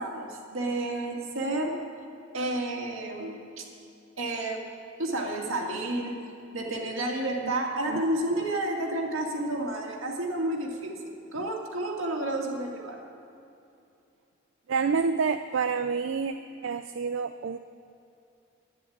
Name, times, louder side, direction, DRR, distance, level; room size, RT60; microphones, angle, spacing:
voice 1, 0.0-1.8 2.3-3.6 4.2-4.7 5.0-6.2 6.5-13.1, right 1 dB, 90° right, 0 dB, 2.1 m, -31 dB
voice 2, 14.7-16.4 16.6-17.6, right 5 dB, 70° right, 9 dB, 0.4 m, -28 dB
11.5 x 9.9 x 8.6 m, 2.7 s
head